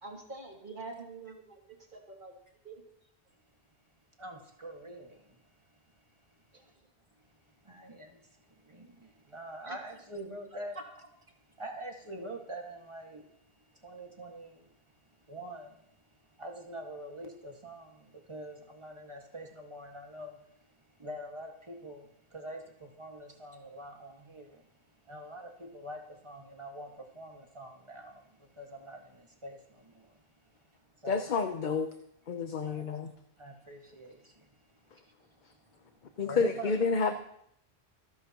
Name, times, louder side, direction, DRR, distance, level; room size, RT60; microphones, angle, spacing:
voice 1, 0.0-2.3 2.6-2.8 6.5-6.7 9.6-9.8, right 3 dB, 55° right, 2.7 m, -46 dB
voice 2, 4.2-5.1 7.7-8.1 8.7-8.9 9.3-10.8 11.6-13.2 13.8-14.5 15.3-15.7 16.4-17.9 18.3-20.3 21.0-22.0 22.3-22.6 23.0-24.5 25.1-26.0 26.2-26.9 27.2-28.1 28.6-29.0 29.4-29.6 31.0-31.3 32.7-32.8 33.4-34.1 36.2-36.8, right 1 dB, 30° right, 1.9 m, -44 dB
voice 3, 31.1-31.9 32.3-33.1 36.2-37.2, left 5 dB, 50° left, 0.9 m, -29 dB
27.0 x 10.5 x 3.0 m
omnidirectional pair, 1.1 m